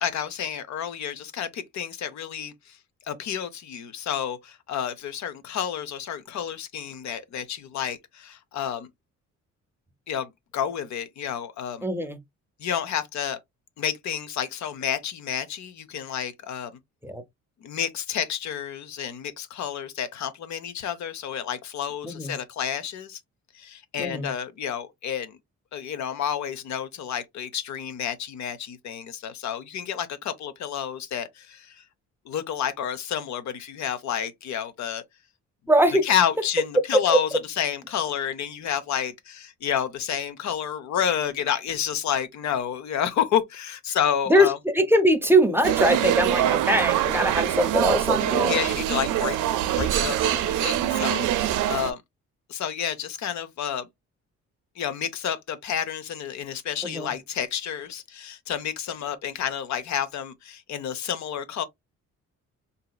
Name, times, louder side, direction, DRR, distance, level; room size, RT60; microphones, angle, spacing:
voice 1, 0.0-2.8 3.1-8.9 10.1-11.8 12.6-13.4 13.8-16.8 17.6-23.2 23.5-25.4 25.7-31.8 32.3-35.0 36.0-44.6 48.4-49.4 49.7-52.0 52.5-53.9 54.8-61.6, left 9 dB, 70° left, 0.7 m, -30 dB
voice 2, 11.8-12.2 17.0-17.2 22.0-22.3 24.0-24.3 35.7-36.0 36.9-37.2 44.3-48.6 56.8-57.1, equal, 5° right, 0.7 m, -21 dB
sound 1, 45.6-51.9, right 12 dB, 85° right, 0.6 m, -24 dB
3.8 x 2.8 x 2.3 m
cardioid pair, 90°, 30 cm